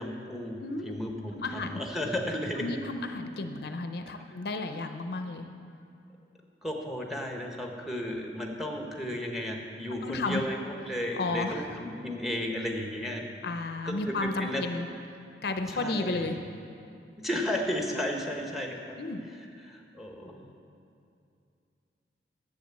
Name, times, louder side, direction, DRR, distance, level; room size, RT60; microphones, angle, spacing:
voice 1, 0.0-2.7 4.1-4.3 6.6-13.2 13.8-14.6 15.7-16.3 17.2-19.0 19.6-20.4, left 1 dB, ahead, 1 dB, 1.1 m, -34 dB
voice 2, 0.6-0.9 1.3-1.8 2.6-5.5 9.9-10.5 11.2-11.6 13.4-14.9 15.4-16.4 19.0-19.3, left 3 dB, 60° left, 7 dB, 0.6 m, -33 dB
10.5 x 7.7 x 7.4 m, 2.5 s
head